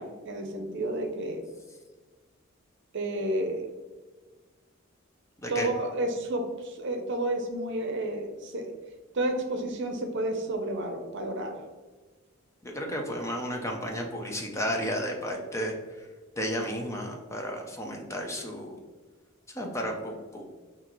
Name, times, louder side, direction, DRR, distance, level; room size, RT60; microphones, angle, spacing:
voice 1, 0.0-1.4 2.9-3.7 5.5-8.7 9.1-11.6, right 1 dB, 60° right, 5 dB, 0.7 m, -31 dB
voice 2, 5.4-5.7 12.6-16.1 16.4-18.8 19.5-20.5, equal, 15° left, 1 dB, 0.6 m, -33 dB
6.1 x 2.8 x 3.1 m, 1.4 s
head